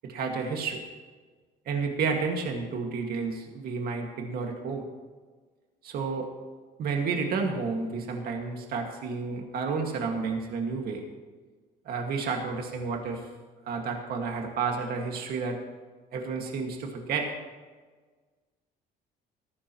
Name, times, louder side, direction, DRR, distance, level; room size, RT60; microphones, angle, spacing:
voice 1, 0.0-0.8 1.7-4.9 5.8-6.3 6.8-11.0 11.9-13.3 13.6-15.6 16.1-17.3, right 4 dB, 65° right, 2 dB, 2.0 m, -31 dB
18.0 x 15.0 x 3.1 m, 1.4 s
cardioid pair, 110°, 17 cm